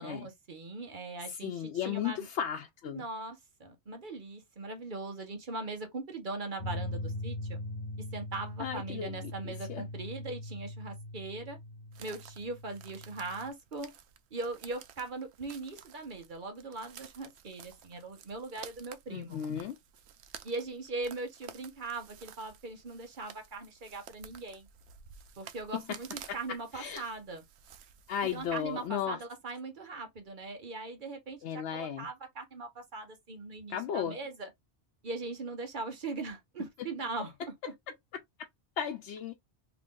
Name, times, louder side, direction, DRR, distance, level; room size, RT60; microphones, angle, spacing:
voice 1, 0.0-1.5 1.8-2.2 2.9-7.6 8.1-11.6 12.0-13.9 14.3-19.4 20.4-24.7 25.4-27.4 28.3-34.5 35.0-37.3, right 3 dB, 50° right, 1.0 m, -40 dB
voice 2, 1.3-3.1 8.6-9.8 19.1-19.8 25.7-26.0 26.3-26.4 26.7-27.1 28.1-29.2 31.4-32.1 33.7-34.2 37.6-37.9 38.8-39.3, left 9 dB, 90° left, 0.9 m, -35 dB
sound 1, 6.6-13.5, left 1 dB, 70° left, 1.2 m, -41 dB
sound 2, 11.9-28.9, right 8 dB, 80° right, 0.8 m, -53 dB
2.9 x 2.5 x 3.6 m
omnidirectional pair, 1.1 m